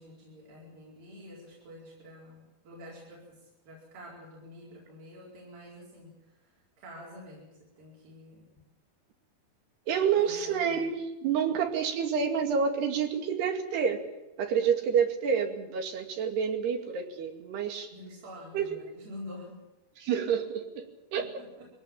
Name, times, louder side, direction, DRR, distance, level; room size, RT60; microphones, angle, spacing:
voice 1, 0.0-8.4 10.1-10.9 17.9-19.6 21.2-21.7, left 1 dB, 65° right, -4 dB, 6.6 m, -48 dB
voice 2, 9.9-14.0 14.4-17.9 18.5-18.7 20.0-21.3, right 7 dB, 85° right, 5 dB, 4.5 m, -28 dB
22.5 x 17.5 x 9.0 m, 0.99 s
omnidirectional pair, 4.6 m